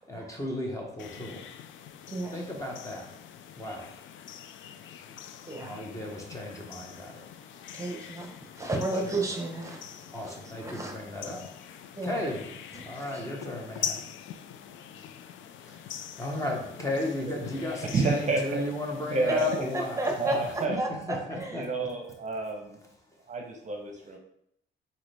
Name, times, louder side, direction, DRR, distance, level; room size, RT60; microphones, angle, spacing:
voice 1, 0.1-1.4 2.3-3.1 3.6-3.9 5.2-7.3 7.5-7.9 8.5-8.6 8.9-9.2 10.1-11.5 12.0-12.5 12.8-14.0 15.7-20.5 20.9-21.9, left 1 dB, 15° left, 0 dB, 1.2 m, -35 dB
sound 1, 1.0-20.6, left 8 dB, 75° left, 0.4 m, -43 dB
voice 2, 2.1-2.4 5.4-5.8 7.7-8.3 8.6-9.8 10.2-10.4 10.6-10.9 11.9-12.1 12.7-12.8 13.1-13.2 20.0-20.4 20.8-21.7, right 2 dB, 15° right, 1 dB, 1.0 m, -32 dB
voice 3, 17.9-18.6 19.1-19.5 20.2-20.8 21.5-22.8 23.3-24.2, right 3 dB, 40° right, 2 dB, 0.8 m, -29 dB
4.1 x 3.8 x 3.4 m, 0.71 s
cardioid pair, 90°, 20 cm